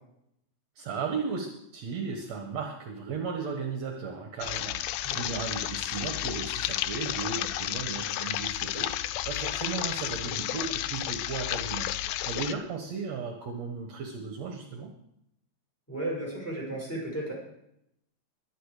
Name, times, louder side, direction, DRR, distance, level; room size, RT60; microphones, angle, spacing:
voice 1, 0.8-14.9, right 5 dB, 65° right, 4 dB, 2.5 m, -36 dB
sound 1, 4.4-12.5, left 13 dB, 85° left, 2.1 m, -32 dB
voice 2, 15.9-17.3, right 1 dB, 5° left, -4 dB, 6.3 m, -34 dB
21.5 x 9.0 x 5.0 m, 0.78 s
omnidirectional pair, 3.5 m